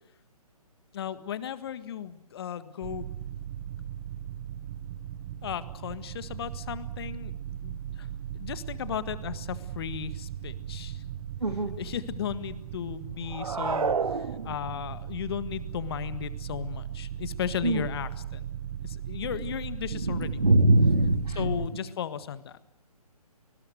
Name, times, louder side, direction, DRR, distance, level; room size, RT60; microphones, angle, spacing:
voice 1, 0.9-3.1 5.4-7.3 7.6-8.1 8.3-11.0 11.8-18.5 18.8-20.4 21.3-22.6, left 9 dB, 40° left, 14 dB, 1.7 m, -35 dB
sound 1, 2.8-21.7, right 10 dB, 30° right, 1.2 m, -38 dB
voice 2, 11.4-11.8 17.6-17.8 19.9-21.6, right 2 dB, 85° right, 8 dB, 3.5 m, -23 dB
sound 2, 13.3-14.9, right 5 dB, 65° right, 2.1 m, -29 dB
26.0 x 20.5 x 8.1 m, 0.80 s
figure-of-eight pair, 140°, 20 cm